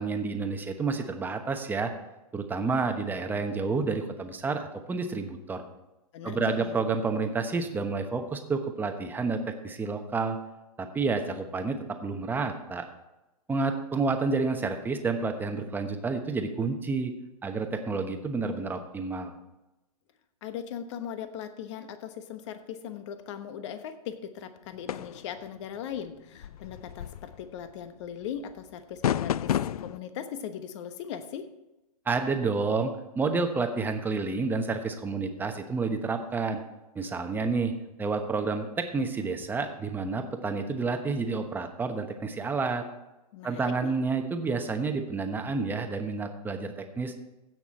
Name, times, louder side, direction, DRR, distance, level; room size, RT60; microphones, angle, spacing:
voice 1, 0.0-1.9 2.3-5.6 6.2-10.4 10.8-12.8 13.5-17.1 17.4-19.3 32.1-36.6 36.9-37.7 38.0-42.8 43.4-47.1, right 4 dB, 10° right, 6 dB, 1.1 m, -29 dB
voice 2, 6.1-6.8 20.4-29.6 29.8-31.5 43.3-43.9, left 8 dB, 50° left, 10 dB, 1.2 m, -39 dB
sound 1, 24.9-25.3 26.4-27.7 29.0-30.0, left 10 dB, 70° left, 0.4 m, -30 dB
16.0 x 6.0 x 4.3 m, 0.97 s
hypercardioid pair, 125°, 20 cm